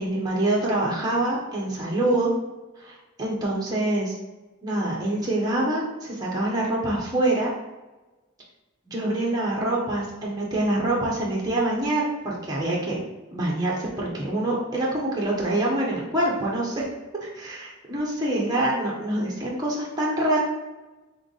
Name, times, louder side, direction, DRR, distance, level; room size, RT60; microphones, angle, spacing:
voice 1, 0.0-2.3 2.8-4.2 4.6-7.5 8.9-12.9 13.3-16.9 17.2-20.4, right 1 dB, 20° right, -4 dB, 1.0 m, -25 dB
3.7 x 3.4 x 4.0 m, 1.1 s
head